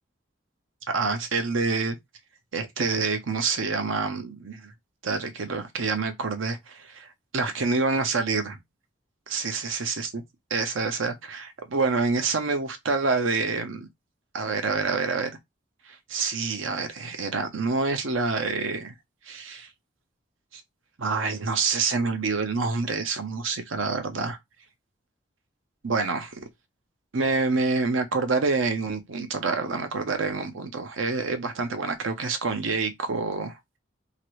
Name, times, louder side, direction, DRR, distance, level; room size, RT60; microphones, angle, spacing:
voice 1, 0.9-2.0 2.5-4.7 5.0-7.1 7.3-8.6 9.3-10.2 10.5-13.9 14.3-15.3 15.9-18.9 19.3-19.7 20.5-20.6 21.0-24.4 25.8-26.4 27.1-33.6, right 4 dB, 85° right, 0.7 m, -27 dB
2.9 x 2.5 x 3.0 m
head